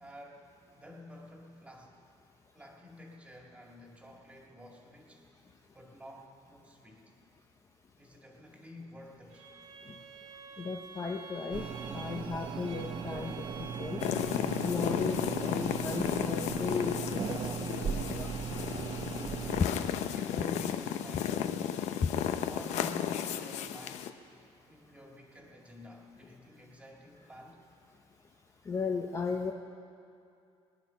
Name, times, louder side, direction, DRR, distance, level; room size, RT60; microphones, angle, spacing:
voice 1, 0.0-2.0 2.5-5.3 5.7-7.1 8.0-9.5 20.1-21.6 22.5-24.2 24.7-27.6, left 1 dB, 10° right, 0 dB, 2.0 m, -49 dB
Bowed string instrument, 9.3-14.5, right 4 dB, 75° right, 2.1 m, -49 dB
voice 2, 10.6-11.7 11.9-14.0 14.6-17.2 17.6-18.3 19.6-19.7 22.0-22.1 28.7-29.5, left 5 dB, 25° left, 3 dB, 0.6 m, -35 dB
sound 1, 11.5-19.6, right 7 dB, 40° right, 0.7 m, -38 dB
sound 2, 14.0-24.1, left 9 dB, 75° left, 0.7 m, -34 dB
22.5 x 10.0 x 5.7 m, 2.5 s
cardioid pair, 165°, 12 cm